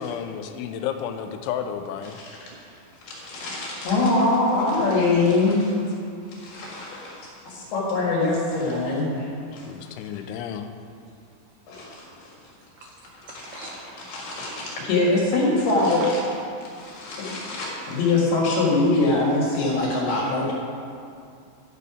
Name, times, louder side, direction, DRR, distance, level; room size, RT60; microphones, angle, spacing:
voice 1, 0.0-2.2 9.5-10.7, left 8 dB, 90° left, 7 dB, 3.0 m, -32 dB
voice 2, 2.5-3.5 6.0-7.7 9.5-10.0 11.1-11.5 13.3-14.8 16.0-16.2, right 3 dB, 80° right, 0 dB, 2.3 m, -48 dB
voice 3, 3.0-5.7 6.3-9.7 11.7-12.3 13.4-13.7 14.1-16.0 16.7-20.5, left 2 dB, 65° left, -4 dB, 3.7 m, -23 dB
12.5 x 6.8 x 5.0 m, 2.4 s
omnidirectional pair, 5.3 m